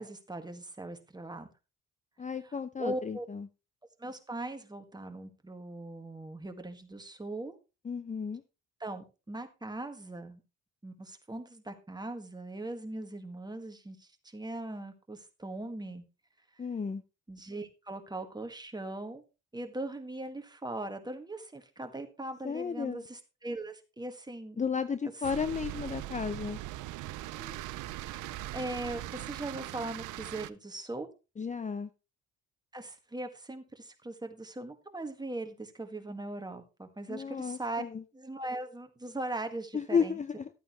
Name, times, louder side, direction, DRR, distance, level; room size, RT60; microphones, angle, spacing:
voice 1, 0.0-1.5 2.4-3.3 4.0-7.6 8.8-10.4 10.8-16.0 17.3-19.2 19.5-24.6 27.4-27.6 28.0-31.1 32.7-37.8 38.1-40.2, right 2 dB, 15° right, 1.8 m, -40 dB
voice 2, 2.2-3.5 7.8-8.4 16.6-17.0 22.4-23.0 24.6-26.6 31.4-31.9 37.1-38.0 39.7-40.5, left 6 dB, 25° left, 0.6 m, -33 dB
sound 1, 25.2-30.5, right 16 dB, 85° right, 0.6 m, -40 dB
13.0 x 8.6 x 3.1 m
cardioid pair, 90°, 30 cm